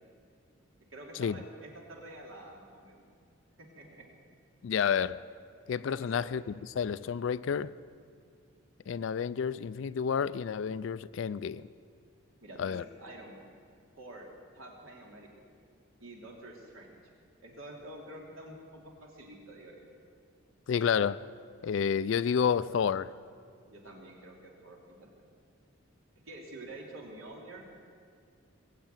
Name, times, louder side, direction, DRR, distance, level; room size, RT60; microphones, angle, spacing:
voice 1, 0.9-3.1 3.6-4.0 5.9-6.3 12.4-13.4 14.0-14.3 14.5-15.3 16.0-17.0 17.4-19.9 23.7-25.1 26.2-27.6, right 1 dB, 75° right, 2.9 m, -48 dB
voice 2, 4.6-5.2 5.7-6.4 6.8-7.7 8.9-11.7 12.6-12.8 20.7-21.3 21.6-23.1, left 7 dB, 65° left, 0.3 m, -30 dB
21.0 x 7.6 x 9.0 m
head